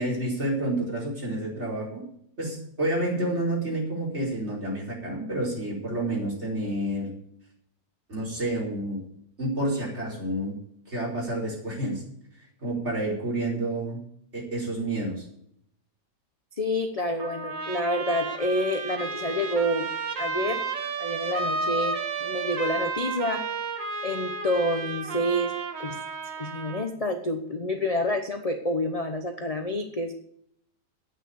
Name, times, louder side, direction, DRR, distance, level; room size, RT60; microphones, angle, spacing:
voice 1, 0.0-2.0 2.4-7.1 8.1-9.0 9.4-10.5 10.9-12.0 12.6-14.0 14.3-15.2, right 1 dB, 35° right, -3 dB, 5.0 m, -29 dB
voice 2, 16.6-19.9 20.2-20.6 21.0-23.5 24.0-25.5 25.8-26.0 26.4-30.1, left 1 dB, 30° left, 5 dB, 0.8 m, -28 dB
Trumpet, 17.2-26.9, right 4 dB, 80° right, 2.2 m, -32 dB
10.5 x 9.1 x 6.9 m, 0.70 s
omnidirectional pair, 1.9 m